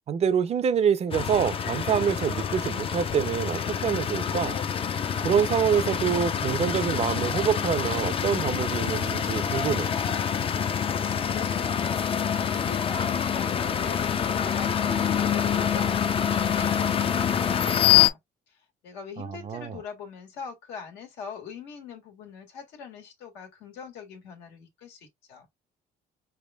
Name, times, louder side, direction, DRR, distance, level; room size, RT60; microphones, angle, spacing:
voice 1, 0.1-4.6 5.2-9.9 19.2-19.7, right 7 dB, 40° right, 0.5 m, -26 dB
sound 1, 1.1-18.1, left 8 dB, 35° left, 0.4 m, -26 dB
voice 2, 10.6-12.2 12.5-18.2 18.5-25.5, left 6 dB, 90° left, 1.6 m, -42 dB
4.6 x 3.4 x 2.2 m
cardioid pair, 110°, 17 cm